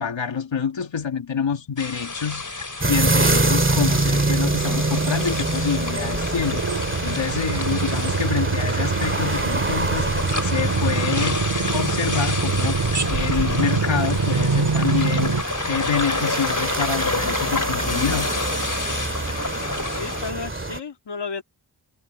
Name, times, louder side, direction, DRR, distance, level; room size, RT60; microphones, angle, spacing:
voice 1, 0.0-18.3, left 6 dB, 85° left, 2.0 m, -27 dB
sound 1, 1.8-20.3, left 3 dB, 40° left, 3.4 m, -30 dB
sound 2, 2.8-20.8, right 2 dB, 25° right, 2.0 m, -26 dB
sound 3, 4.8-15.4, right 4 dB, 65° right, 2.1 m, -25 dB
voice 2, 19.8-21.4, left 4 dB, 65° left, 2.2 m, -33 dB
wide cardioid pair, 55°, 44 cm